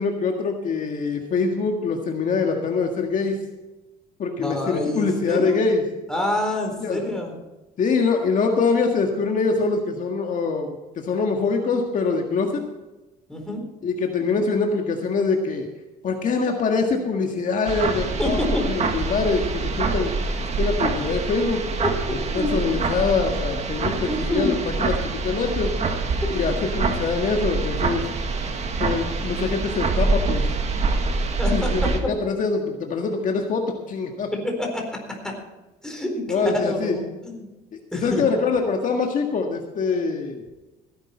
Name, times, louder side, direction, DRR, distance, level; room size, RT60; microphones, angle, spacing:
voice 1, 0.0-3.4 4.2-5.8 6.8-7.0 7.8-12.6 13.8-15.7 16.0-20.1 20.6-21.6 22.1-25.7 26.3-28.0 28.8-30.4 31.5-34.3 36.3-37.0 38.0-40.4, left 4 dB, 50° left, 2 dB, 1.8 m, -24 dB
voice 2, 4.4-5.6 6.1-7.4 13.3-13.6 18.2-18.6 21.8-22.5 24.1-24.5 31.4-31.7 34.4-35.3 35.8-37.5 37.9-38.2, left 1 dB, 5° left, 1 dB, 4.1 m, -27 dB
sound 1, 17.7-32.0, right 3 dB, 40° right, 1.9 m, -25 dB
16.5 x 10.5 x 4.4 m, 1.1 s
cardioid pair, 110°, 17 cm